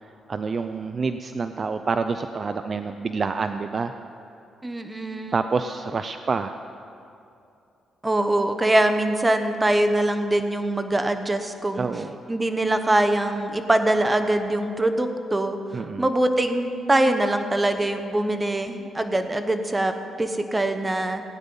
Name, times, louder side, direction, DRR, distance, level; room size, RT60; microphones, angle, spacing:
voice 1, 0.3-3.9 5.3-6.6 11.8-12.1 15.7-16.1, right 4 dB, 40° right, 9 dB, 0.4 m, -27 dB
voice 2, 4.6-5.3 8.0-11.9 12.3-15.6 16.0-21.2, right 1 dB, 15° right, 8 dB, 1.0 m, -23 dB
16.5 x 9.5 x 5.4 m, 2.7 s
cardioid pair, 85°, 0 cm